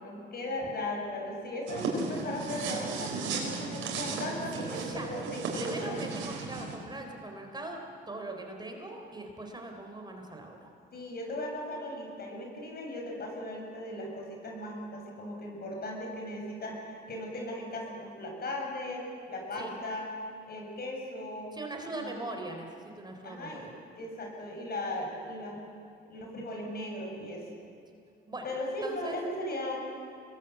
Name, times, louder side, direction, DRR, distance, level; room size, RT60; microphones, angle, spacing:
voice 1, 0.0-6.0 10.9-20.1 20.5-21.5 21.9-22.2 23.2-23.7 23.9-25.6 26.1-27.5 28.4-29.8, left 1 dB, 50° left, 0 dB, 7.7 m, -37 dB
sound 1, 1.7-6.7, right 4 dB, 90° right, 4.7 m, -35 dB
voice 2, 4.5-5.1 5.5-7.8 8.1-10.7 19.6-19.7 21.5-23.7 28.3-28.4 28.8-29.2, right 2 dB, 20° right, 3 dB, 3.8 m, -41 dB
25.0 x 20.5 x 8.2 m, 2.5 s
cardioid pair, 90°, 20 cm